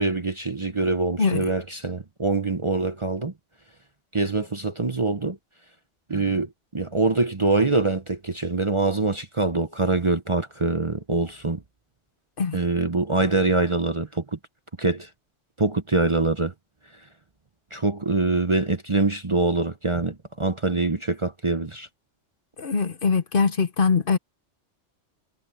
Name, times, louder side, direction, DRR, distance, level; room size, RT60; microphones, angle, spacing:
voice 1, 0.0-3.3 4.1-5.4 6.1-11.6 12.5-14.4 14.8-15.1 15.6-16.5 17.7-21.9, right 3 dB, 30° right, 0.8 m, -24 dB
voice 2, 1.2-1.5 12.4-12.6 22.6-24.2, left 5 dB, 50° left, 1.1 m, -22 dB
omnidirectional pair, 1.2 m